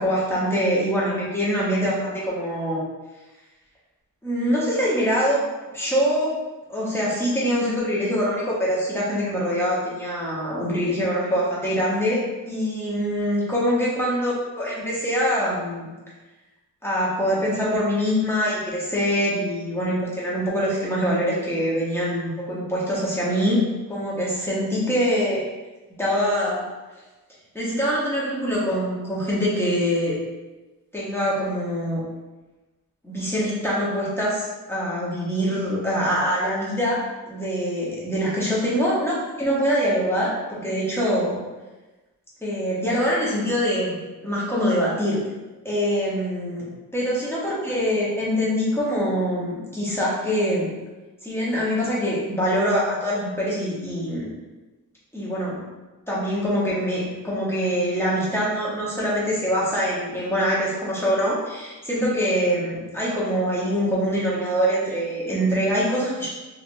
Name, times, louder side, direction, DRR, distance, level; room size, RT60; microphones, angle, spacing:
voice 1, 0.0-2.8 4.2-5.4 5.7-6.3 6.7-15.9 16.8-23.6 23.9-25.4 26.0-26.7 27.5-30.2 30.9-32.0 33.0-41.4 42.4-45.2 45.6-46.6 46.9-50.7 51.2-54.3 55.1-55.6 56.1-66.3, equal, 5° left, -7 dB, 0.9 m, -24 dB
3.2 x 2.5 x 2.5 m, 1.1 s
wide cardioid pair, 125°, 33 cm